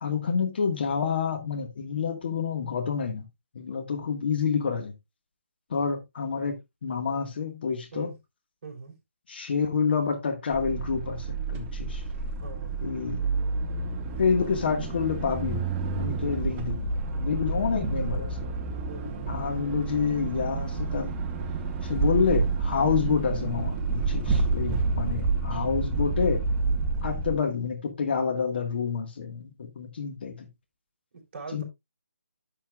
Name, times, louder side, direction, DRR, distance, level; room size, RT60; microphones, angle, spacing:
voice 1, 0.0-3.3 3.5-4.9 5.7-6.6 6.8-8.1 9.3-12.0 12.8-13.2 14.2-15.7 15.9-16.9 17.1-18.4 19.3-21.1 21.8-26.5 27.0-30.5 31.5-31.6, left 6 dB, 45° left, 1.5 m, -28 dB
voice 2, 8.6-8.9 12.4-12.8 18.9-19.1 31.1-31.6, right 4 dB, 40° right, 3.7 m, -41 dB
sound 1, 10.5-27.4, right 3 dB, 15° right, 0.8 m, -29 dB
11.0 x 7.0 x 2.3 m
figure-of-eight pair, 160°, 8 cm